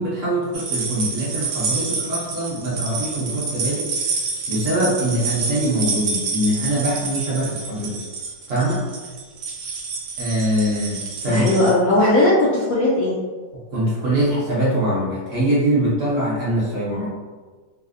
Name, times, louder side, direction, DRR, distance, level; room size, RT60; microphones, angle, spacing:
voice 1, 0.0-3.9 4.5-8.0 8.5-8.8 10.2-11.5 13.7-17.1, right 1 dB, 55° right, -7 dB, 1.0 m, -23 dB
sound 1, 0.5-11.7, right 4 dB, 75° right, 1.2 m, -28 dB
voice 2, 11.3-13.2 16.9-17.1, left 1 dB, 70° left, -6 dB, 0.8 m, -18 dB
4.1 x 2.0 x 2.5 m, 1.4 s
omnidirectional pair, 2.0 m